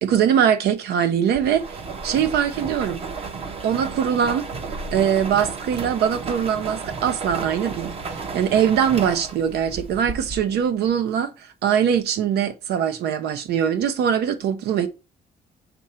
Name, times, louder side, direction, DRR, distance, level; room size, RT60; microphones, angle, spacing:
voice 1, 0.0-1.8 2.0-3.0 3.6-4.5 4.9-14.9, right 8 dB, 85° right, 0.7 m, -22 dB
sound 1, 1.3-10.7, right 4 dB, 35° right, 0.8 m, -33 dB
7.0 x 3.8 x 4.3 m
cardioid pair, 175°, 16 cm